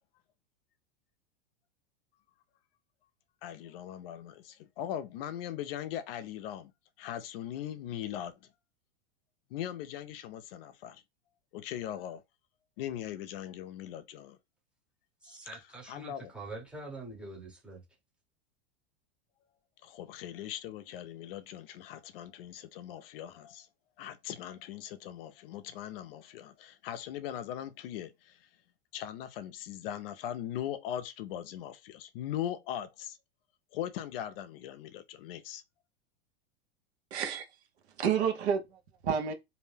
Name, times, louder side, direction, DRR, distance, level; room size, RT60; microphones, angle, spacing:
voice 1, 3.4-6.7 7.0-8.5 9.5-11.0 11.5-12.2 12.8-14.4 15.2-15.6 15.9-16.3 19.8-23.7 24.0-28.5 28.9-33.2 33.7-35.6, left 11 dB, 60° left, 0.5 m, -40 dB
voice 2, 15.2-17.8, right 2 dB, 5° right, 0.8 m, -45 dB
voice 3, 37.1-37.5 38.0-39.3, right 7 dB, 90° right, 0.9 m, -30 dB
2.6 x 2.1 x 3.2 m
supercardioid pair, 150°, 32 cm